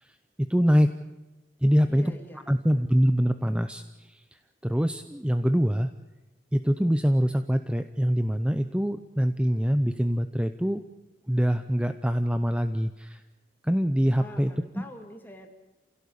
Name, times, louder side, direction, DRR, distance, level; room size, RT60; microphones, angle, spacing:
voice 1, 0.5-0.9 1.6-2.1 2.5-4.2 4.6-5.9 6.5-10.8 11.3-13.2 13.6-14.8, equal, 5° right, 9 dB, 0.7 m, -24 dB
voice 2, 1.9-2.9 14.2-15.5, left 1 dB, 10° left, 3 dB, 3.1 m, -45 dB
27.5 x 17.0 x 8.6 m, 1.1 s
head